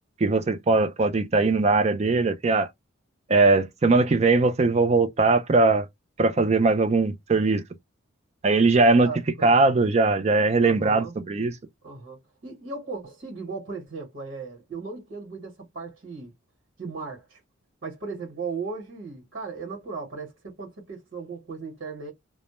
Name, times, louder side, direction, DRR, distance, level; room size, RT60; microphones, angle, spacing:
voice 1, 0.2-2.7 3.3-5.9 6.2-7.6 8.4-9.1 9.4-11.5, right 3 dB, 35° right, 0.4 m, -20 dB
voice 2, 9.0-9.6 10.6-11.1 11.8-16.3 16.8-17.4 17.8-22.1, right 4 dB, 70° right, 1.1 m, -37 dB
2.1 x 2.0 x 2.9 m
head